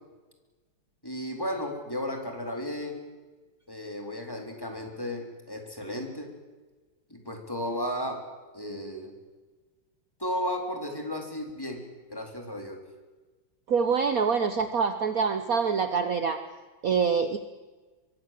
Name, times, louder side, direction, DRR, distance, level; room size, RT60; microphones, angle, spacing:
voice 1, 1.0-3.0 3.7-6.3 7.1-8.2 8.5-9.1 10.2-11.8 12.1-12.8, left 1 dB, 10° left, 2 dB, 4.0 m, -34 dB
voice 2, 13.7-16.4 16.8-17.4, right 6 dB, 50° right, 9 dB, 1.4 m, -25 dB
25.0 x 23.0 x 7.6 m, 1.3 s
omnidirectional pair, 2.2 m